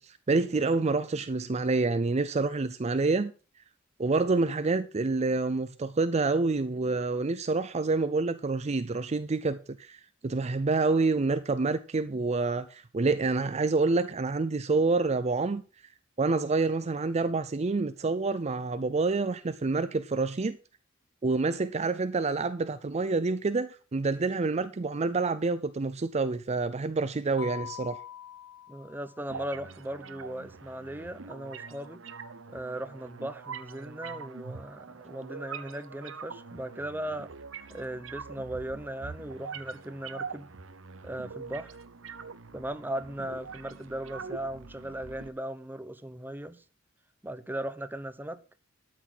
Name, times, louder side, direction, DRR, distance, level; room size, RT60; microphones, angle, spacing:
voice 1, 0.0-3.3 4.0-15.6 16.2-20.6 21.2-28.0, right 3 dB, 35° right, 0.5 m, -27 dB
Mallet percussion, 27.4-29.4, left 10 dB, 85° left, 1.4 m, -43 dB
voice 2, 28.7-32.0 32.5-37.3 37.7-40.5 41.0-41.8 42.5-46.6 47.2-48.4, right 1 dB, 10° right, 0.8 m, -37 dB
sound 1, 29.3-45.3, right 5 dB, 75° right, 1.0 m, -44 dB
12.5 x 6.2 x 6.1 m
head